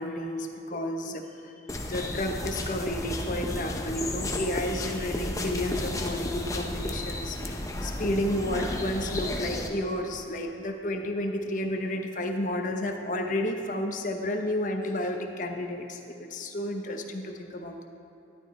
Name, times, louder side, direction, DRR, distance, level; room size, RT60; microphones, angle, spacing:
voice 1, 0.0-17.9, left 1 dB, 45° left, 4 dB, 1.0 m, -31 dB
sound 1, 1.7-9.7, left 1 dB, 20° left, 0.8 m, -33 dB
12.5 x 11.5 x 4.4 m, 2.8 s
head